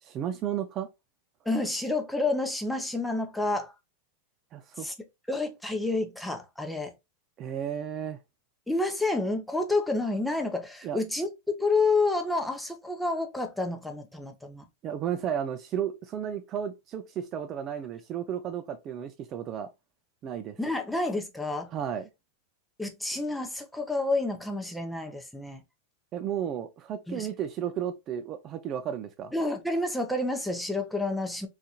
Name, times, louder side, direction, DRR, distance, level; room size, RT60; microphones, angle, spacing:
voice 1, 0.0-0.9 4.5-4.9 7.4-8.2 10.8-11.0 14.8-19.7 20.2-20.6 21.7-22.1 26.1-29.3, right 9 dB, 35° right, 0.4 m, -33 dB
voice 2, 1.4-3.7 4.8-4.9 5.3-6.9 8.7-14.6 20.6-21.7 22.8-25.6 27.1-27.3 29.3-31.5, left 2 dB, 5° left, 0.7 m, -29 dB
3.9 x 2.5 x 2.8 m
supercardioid pair, 135°, 0 cm